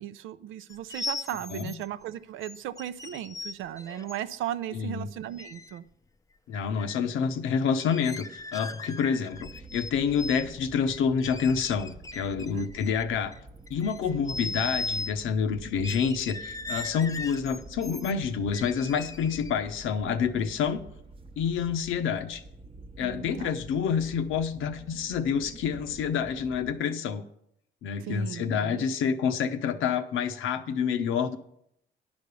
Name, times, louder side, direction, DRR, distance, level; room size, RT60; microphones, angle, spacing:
voice 1, 0.0-5.9 12.5-12.7 14.1-14.3 23.0-23.6 28.0-28.9, right 11 dB, 85° right, 13 dB, 0.5 m, -36 dB
sound 1, 0.7-1.8 2.4-4.2 5.4-5.8 6.5-7.1 7.8-9.9 10.2-10.4 10.9-13.4 13.7-15.1 15.8-18.1 18.5-19.6, left 3 dB, 15° left, 0.4 m, -38 dB
voice 2, 4.7-5.1 6.5-13.3 13.7-20.8 21.4-22.4 23.0-27.2 27.8-31.4, left 6 dB, 85° left, 9 dB, 0.8 m, -28 dB
sound 2, 9.3-26.7, right 3 dB, 30° right, 0.8 m, -48 dB
10.5 x 5.2 x 6.8 m, 0.74 s
cardioid pair, 90°, 20 cm